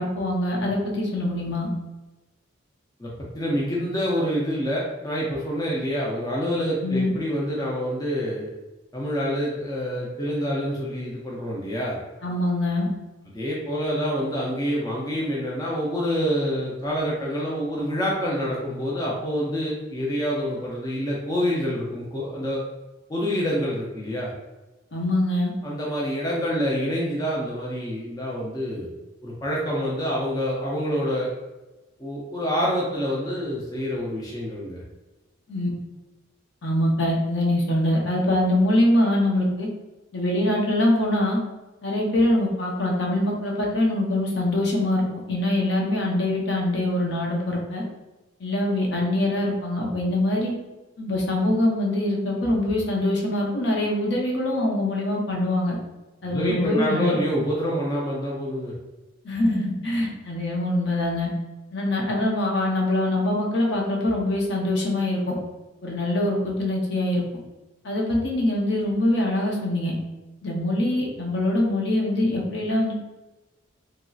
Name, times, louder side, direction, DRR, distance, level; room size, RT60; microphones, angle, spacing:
voice 1, 0.0-1.7 6.8-7.1 12.2-12.9 24.9-25.5 35.5-35.7 36.6-39.7 40.1-41.4 41.8-47.8 48.4-50.5 51.0-55.8 56.2-57.1 59.2-61.3 61.7-65.3 65.8-67.2 67.8-69.9 70.4-72.9, left 1 dB, 55° left, -2 dB, 0.7 m, -23 dB
voice 2, 3.0-8.5 8.9-12.0 13.3-22.6 23.1-24.3 25.6-28.9 29.2-31.3 32.0-34.8 56.2-58.7, equal, 20° left, -4 dB, 0.4 m, -27 dB
2.9 x 2.6 x 2.3 m, 1.1 s
head